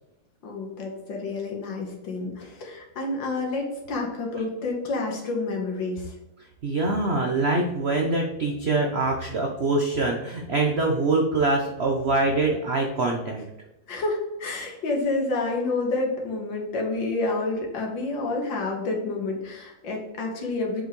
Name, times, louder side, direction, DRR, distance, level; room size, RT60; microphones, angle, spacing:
voice 1, 0.4-6.1 13.9-20.8, left 3 dB, 70° left, 0 dB, 2.2 m, -29 dB
voice 2, 6.6-13.4, right 2 dB, 60° right, 1 dB, 0.7 m, -24 dB
7.7 x 5.4 x 3.1 m, 0.93 s
omnidirectional pair, 2.2 m